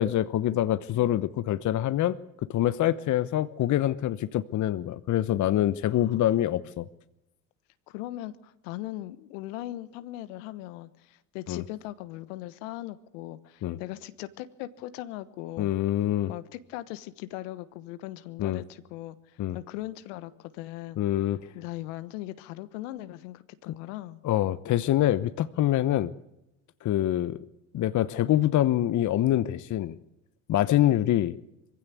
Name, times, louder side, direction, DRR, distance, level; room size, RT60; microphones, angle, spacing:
voice 1, 0.0-2.2 2.5-6.9 11.5-11.6 13.6-13.8 15.6-16.3 18.4-18.6 19.4-19.6 21.0-21.4 24.2-26.1 26.8-27.4 27.7-30.0 30.5-31.3, left 13 dB, 50° left, 15 dB, 1.0 m, -25 dB
voice 2, 5.8-6.6 7.9-15.7 16.3-21.0 21.5-24.2 30.7-30.9, left 15 dB, 75° left, 13 dB, 1.3 m, -39 dB
22.5 x 16.0 x 8.2 m, 0.89 s
hypercardioid pair, 65°, 39 cm